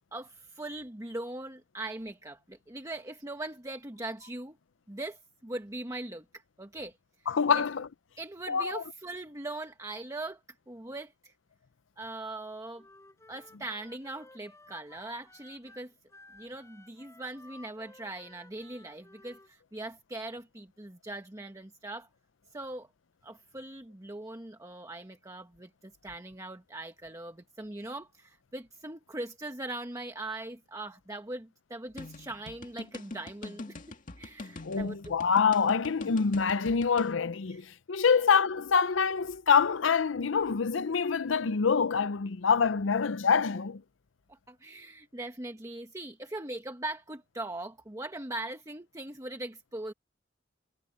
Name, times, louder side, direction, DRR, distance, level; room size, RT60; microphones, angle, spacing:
voice 1, 0.1-4.6 4.9-6.2 6.6-7.0 7.5-7.6 8.2-10.4 10.7-11.3 12.0-12.8 13.3-15.9 16.3-22.1 22.5-22.9 23.2-35.1 37.5-37.6 44.3-49.9, right 2 dB, 15° right, 1.4 m, -40 dB
voice 2, 7.3-7.9 8.5-8.8 34.6-43.8, left 6 dB, 80° left, 0.6 m, -26 dB
Wind instrument woodwind instrument, 12.7-19.5, left 2 dB, 15° left, 7.9 m, -56 dB
sound 1, 32.0-37.1, left 2 dB, 45° left, 2.1 m, -43 dB
head